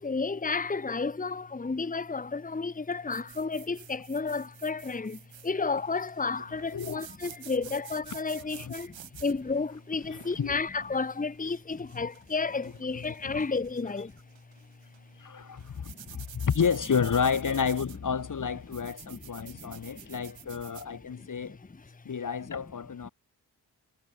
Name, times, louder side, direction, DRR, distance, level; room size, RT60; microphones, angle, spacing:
voice 1, 0.0-14.1 15.9-16.2 19.0-20.2 21.2-21.6 23.0-23.1, left 4 dB, 20° left, 1.2 m, -32 dB
sound 1, 3.1-20.9, right 10 dB, 75° right, 2.7 m, -50 dB
voice 2, 10.1-10.6 12.0-12.1 13.0-13.4 15.2-21.6 22.0-23.1, left 6 dB, 45° left, 1.2 m, -30 dB
supercardioid pair, 45°, 45 cm